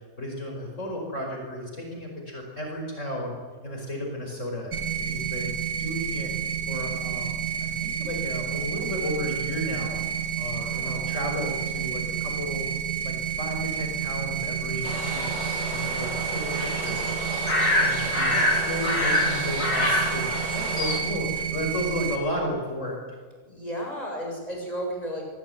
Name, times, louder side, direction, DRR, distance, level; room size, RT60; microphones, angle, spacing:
voice 1, 0.2-3.4 3.6-4.7 5.0-6.3 6.7-10.0 10.4-12.7 13.0-15.2 15.7-17.1 17.8-23.0, left 1 dB, 45° left, 1 dB, 5.4 m, -33 dB
sound 1, 4.7-22.2, right 8 dB, 60° right, 3.4 m, -30 dB
voice 2, 10.5-11.1 23.5-25.3, equal, 20° left, 0 dB, 7.6 m, -34 dB
sound 2, 14.8-21.0, left 1 dB, 80° left, 6.5 m, -27 dB
24.0 x 23.0 x 9.4 m, 1.5 s
omnidirectional pair, 1.9 m